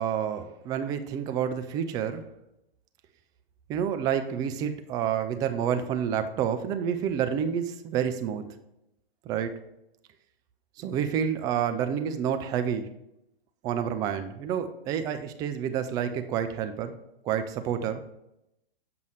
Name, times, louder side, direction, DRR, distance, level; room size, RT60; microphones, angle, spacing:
voice 1, 0.0-2.2 3.7-8.5 9.2-9.5 10.8-12.9 13.6-16.9 17.2-18.0, right 8 dB, 15° right, 8 dB, 0.3 m, -29 dB
7.6 x 5.2 x 3.2 m, 0.84 s
figure-of-eight pair, 105°, 29 cm